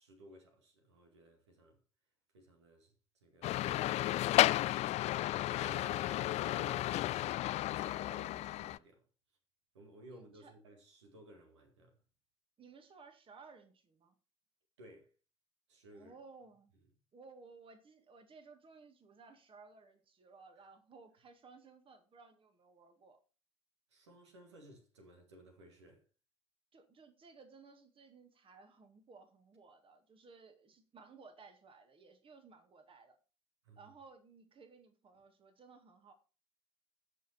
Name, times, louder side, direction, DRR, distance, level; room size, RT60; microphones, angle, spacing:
voice 1, 0.0-1.8 2.3-2.9 3.2-4.8 5.1-9.0 9.7-12.0 14.8-15.1 15.7-16.2 23.9-26.0 33.6-33.9, right 1 dB, 80° right, 2.0 m, -57 dB
sound 1, 3.4-8.8, left 15 dB, 50° left, 0.4 m, -33 dB
voice 2, 5.6-6.1 10.1-10.5 12.6-14.1 15.9-16.7 17.1-23.2 26.7-33.2 33.8-36.1, right 4 dB, 40° right, 2.0 m, -58 dB
15.5 x 5.5 x 4.4 m
figure-of-eight pair, 55°, 15 cm